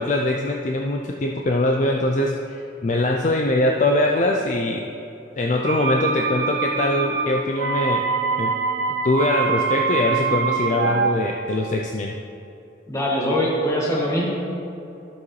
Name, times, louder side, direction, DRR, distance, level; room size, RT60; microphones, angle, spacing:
voice 1, 0.0-4.8 5.4-8.0 8.4-8.5 9.0-12.1, left 1 dB, 40° left, 1 dB, 0.4 m, -22 dB
sound 1, 5.6-11.1, right 5 dB, 60° right, 0.6 m, -24 dB
voice 2, 12.9-14.3, equal, 15° left, -4 dB, 1.4 m, -22 dB
11.5 x 7.2 x 3.2 m, 2.8 s
head